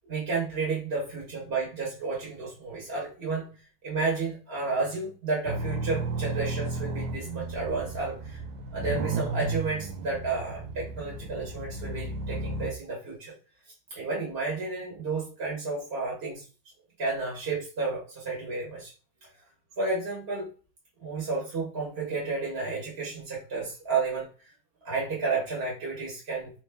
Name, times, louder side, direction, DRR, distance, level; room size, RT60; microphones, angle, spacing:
voice 1, 0.1-3.6 3.8-8.4 8.7-13.3 13.9-16.5 17.0-18.9 19.8-20.5 21.0-24.3 24.8-26.5, right 4 dB, 35° right, -4 dB, 1.2 m, -31 dB
sound 1, 5.5-12.7, right 3 dB, 80° right, 1.7 m, -33 dB
3.8 x 3.1 x 3.3 m, 0.38 s
omnidirectional pair, 2.4 m